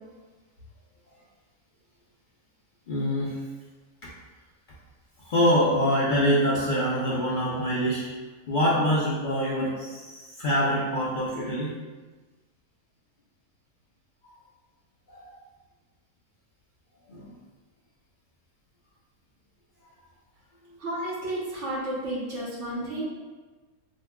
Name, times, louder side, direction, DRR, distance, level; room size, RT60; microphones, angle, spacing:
voice 1, 2.9-3.4 4.0-4.1 5.2-8.0 8.5-11.8 14.2-14.3 15.1-15.3 17.1-17.3, equal, 70° left, -7 dB, 0.4 m, -25 dB
voice 2, 20.8-23.0, right 1 dB, 55° right, -7 dB, 1.2 m, -32 dB
5.1 x 2.2 x 2.2 m, 1.3 s
omnidirectional pair, 1.5 m